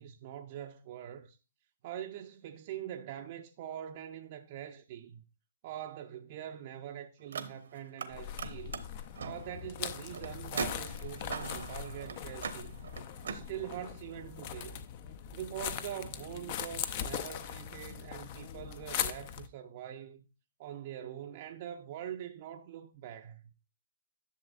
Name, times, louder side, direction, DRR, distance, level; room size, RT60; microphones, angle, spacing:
voice 1, 0.0-1.4 1.8-5.2 5.6-8.9 9.2-12.8 13.3-14.9 15.3-20.3 20.6-23.4, right 10 dB, 45° right, 0.6 m, -43 dB
Car, 7.2-8.1 8.3-13.4, right 5 dB, 70° right, 1.0 m, -41 dB
sound 1, 8.1-19.5, left 9 dB, 40° left, 0.6 m, -40 dB
11.0 x 6.7 x 2.4 m
hypercardioid pair, 135°, 0 cm